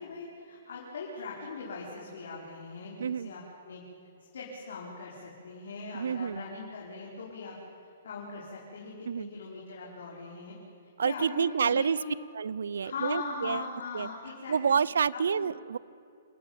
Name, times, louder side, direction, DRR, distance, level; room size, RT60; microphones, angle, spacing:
voice 1, 0.0-3.8 4.3-7.6 8.0-10.6 11.0-12.2 12.8-14.8 15.1-15.5, left 4 dB, 70° left, -4 dB, 5.1 m, -40 dB
voice 2, 5.9-6.4 9.1-9.3 11.0-12.0 12.3-13.7 13.9-14.1 14.5-15.8, right 6 dB, 85° right, 23 dB, 0.5 m, -28 dB
27.5 x 14.0 x 9.1 m, 2.7 s
hypercardioid pair, 170°, 0 cm